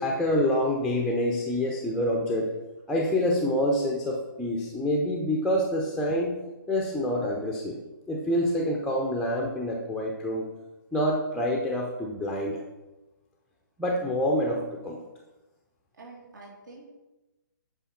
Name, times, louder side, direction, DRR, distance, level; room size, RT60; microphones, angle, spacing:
voice 1, 0.0-2.5 2.9-6.3 6.7-7.8 8.1-10.5 10.9-12.6 13.8-15.0, left 1 dB, ahead, -1 dB, 0.7 m, -27 dB
voice 2, 16.0-16.9, right 3 dB, 60° right, -3 dB, 2.7 m, -47 dB
8.9 x 5.5 x 4.2 m, 1.1 s
figure-of-eight pair, 135°, 11 cm